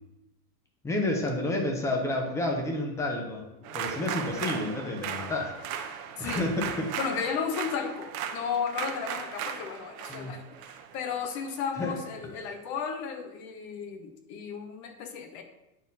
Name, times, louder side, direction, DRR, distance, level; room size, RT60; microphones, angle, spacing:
voice 1, 0.8-3.4 3.7-5.9 6.2-6.5 6.8-6.9 10.1-10.4 11.8-11.9, left 2 dB, 5° left, 1 dB, 0.6 m, -30 dB
sound 1, 3.5-6.1, left 1 dB, 65° left, 2.1 m, -50 dB
sound 2, 3.6-12.0, right 8 dB, 60° right, 0.9 m, -37 dB
voice 2, 6.2-6.5 7.0-10.4 10.9-15.4, left 6 dB, 35° left, 6 dB, 0.9 m, -34 dB
9.0 x 4.3 x 4.0 m, 0.92 s
supercardioid pair, 165°, 47 cm